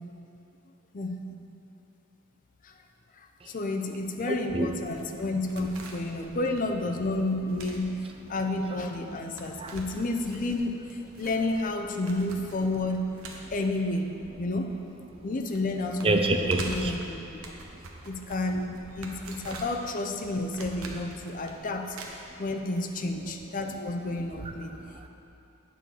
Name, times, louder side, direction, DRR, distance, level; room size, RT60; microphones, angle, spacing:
voice 1, 0.9-1.3 2.6-2.7 3.2-8.0 8.3-13.1 13.5-14.7 15.2-17.2 18.0-22.0 22.4-24.8, left 2 dB, 40° left, 4 dB, 0.5 m, -31 dB
voice 2, 4.3-5.2 8.7-8.8 9.3-9.8 11.2-11.3 15.1-15.2 16.0-17.0 17.4-18.3 21.6-21.7 22.2-22.4 24.2-25.1, right 2 dB, 25° right, 4 dB, 0.5 m, -31 dB
sound 1, 4.8-14.8 15.1-15.2 15.5-22.8 23.1-23.2, right 2 dB, 75° right, 0.9 m, -45 dB
9.2 x 6.4 x 3.9 m, 2.7 s
head